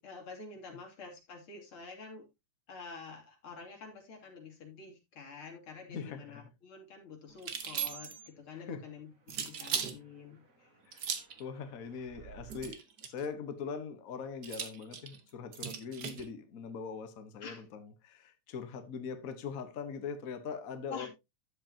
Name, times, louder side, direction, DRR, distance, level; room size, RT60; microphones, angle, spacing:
voice 1, 0.0-2.3 2.7-10.8 17.4-17.7 20.9-21.1, left 4 dB, 45° left, 3.6 m, -48 dB
voice 2, 5.9-6.4 8.5-8.8 10.9-11.0 11.4-21.1, left 6 dB, 70° left, 0.8 m, -41 dB
sound 1, 7.4-8.3 9.3-10.0 10.9-11.4 12.5-13.3 14.4-16.2, right 7 dB, 55° right, 1.2 m, -38 dB
sound 2, 8.2-12.7, right 8 dB, 35° right, 1.8 m, -58 dB
12.0 x 7.9 x 2.8 m
omnidirectional pair, 3.4 m